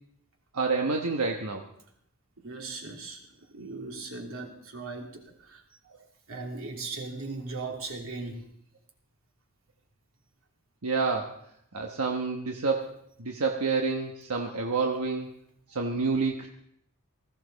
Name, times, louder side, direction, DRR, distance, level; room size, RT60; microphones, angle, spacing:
voice 1, 0.5-1.6 10.8-11.4 11.7-12.9 13.2-15.3 15.7-16.5, right 4 dB, 90° right, 2 dB, 1.2 m, -28 dB
voice 2, 2.4-3.2 3.5-5.6 6.3-8.5, right 3 dB, 70° right, 0 dB, 3.0 m, -38 dB
19.5 x 15.0 x 4.1 m, 0.74 s
head